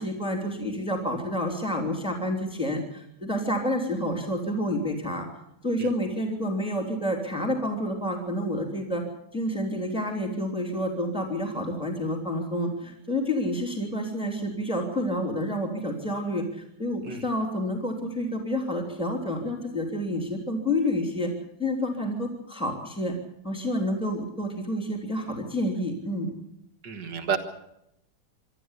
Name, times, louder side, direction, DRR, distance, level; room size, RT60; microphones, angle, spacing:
voice 1, 0.0-5.3 5.6-9.0 9.3-21.3 21.6-23.1 23.4-26.3, left 1 dB, 5° right, 2 dB, 3.0 m, -29 dB
voice 2, 26.8-27.4, right 7 dB, 75° right, 6 dB, 2.4 m, -30 dB
25.5 x 13.0 x 8.2 m, 0.82 s
omnidirectional pair, 1.9 m